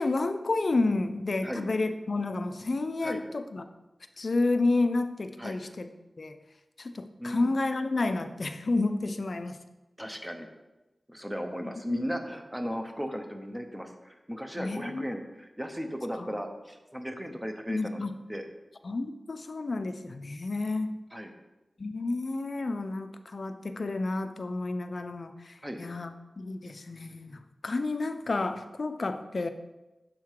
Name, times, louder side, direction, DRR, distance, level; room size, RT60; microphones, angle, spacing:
voice 1, 0.0-3.6 4.2-5.9 6.2-6.4 6.8-9.6 11.6-12.1 14.6-15.1 16.2-16.4 17.7-18.2 18.8-20.9 21.8-29.5, left 3 dB, 60° left, 9 dB, 0.4 m, -30 dB
voice 2, 7.2-7.5 10.0-10.5 11.1-18.0 18.3-18.4 21.1-21.3 25.6-25.8, equal, 10° right, 5 dB, 0.7 m, -36 dB
6.5 x 3.6 x 4.7 m, 1.0 s
wide cardioid pair, 80°, 0 cm